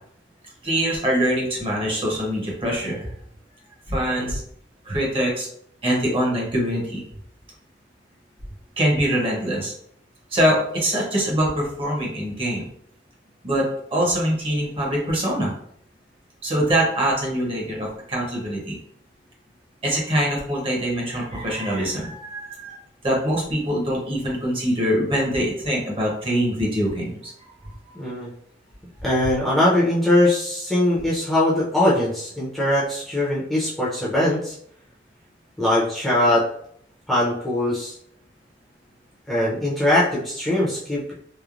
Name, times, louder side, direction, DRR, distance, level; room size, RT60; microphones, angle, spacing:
voice 1, 0.6-3.1 3.9-4.4 4.8-5.5 5.8-7.0 8.8-9.7 10.3-12.7 13.4-15.5 16.4-18.8 19.8-22.8 23.0-27.5, equal, 30° right, -2 dB, 0.8 m, -23 dB
voice 2, 27.9-28.3 29.0-34.5 35.6-36.5 37.1-37.9 39.3-41.1, left 1 dB, ahead, -8 dB, 0.6 m, -21 dB
3.1 x 2.1 x 2.4 m, 0.66 s
head